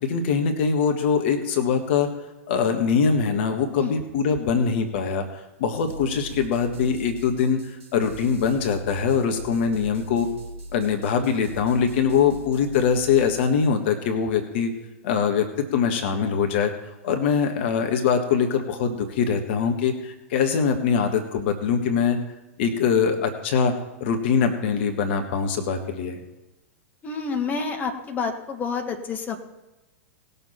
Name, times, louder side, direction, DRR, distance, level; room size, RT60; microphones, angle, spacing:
voice 1, 0.0-2.1 2.5-5.2 5.6-7.6 7.9-10.3 10.7-14.7 15.0-15.5 15.7-16.7 17.0-22.2 22.6-23.7 24.0-26.2, left 6 dB, 50° left, 5 dB, 1.6 m, -23 dB
sound 1, 5.9-13.6, right 2 dB, 65° right, 2.7 m, -39 dB
voice 2, 27.0-29.4, left 5 dB, 20° left, 3 dB, 1.7 m, -28 dB
19.5 x 7.0 x 4.5 m, 1.1 s
figure-of-eight pair, 95°, 8 cm